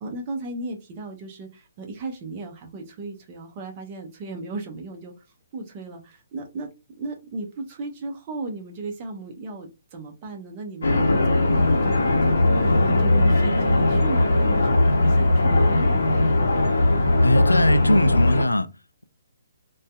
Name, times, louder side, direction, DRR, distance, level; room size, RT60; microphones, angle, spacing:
voice 1, 0.0-5.1 5.5-6.7 7.0-16.2, right 2 dB, 30° right, 0.7 m, -36 dB
sound 1, 10.8-18.4, left 2 dB, 60° left, 0.7 m, -19 dB
voice 2, 17.2-18.7, left 1 dB, 85° left, 0.3 m, -20 dB
2.6 x 2.3 x 2.2 m
figure-of-eight pair, 135°, 0 cm